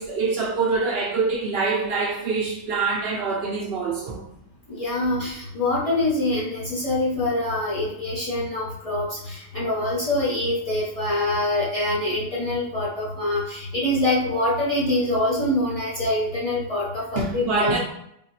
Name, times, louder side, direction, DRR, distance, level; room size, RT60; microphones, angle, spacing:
voice 1, 0.0-4.2 17.2-17.8, right 4 dB, 65° right, 0.7 m, -25 dB
voice 2, 4.7-17.7, left 1 dB, 35° left, 0.7 m, -25 dB
3.4 x 2.3 x 2.8 m
omnidirectional pair, 1.2 m